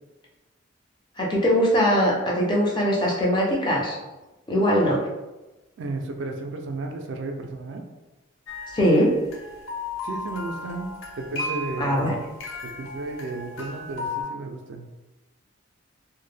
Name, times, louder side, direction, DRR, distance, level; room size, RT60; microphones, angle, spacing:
voice 1, 1.2-4.0 4.5-5.0 8.7-9.1 11.8-12.1, equal, 25° left, -3 dB, 0.4 m, -21 dB
voice 2, 5.8-7.9 10.0-12.2 12.6-14.9, right 2 dB, 70° right, 4 dB, 0.3 m, -33 dB
sound 1, 8.5-14.2, left 3 dB, 80° left, 0.5 m, -35 dB
2.0 x 2.0 x 3.1 m, 1.1 s
head